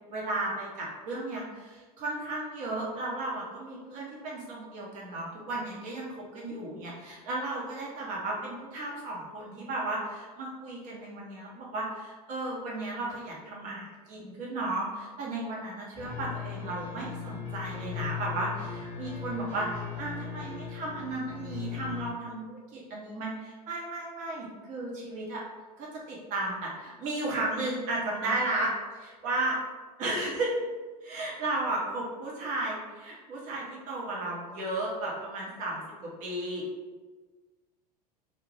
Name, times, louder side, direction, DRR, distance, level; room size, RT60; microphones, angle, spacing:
voice 1, 0.1-6.1 6.3-25.4 25.8-29.6 30.0-30.6 31.0-36.6, right 2 dB, 40° right, -4 dB, 1.0 m, -34 dB
sound 1, 15.9-22.1, left 7 dB, 5° left, 1.0 m, -38 dB
2.7 x 2.5 x 3.2 m, 1.3 s
figure-of-eight pair, 80°, 20 cm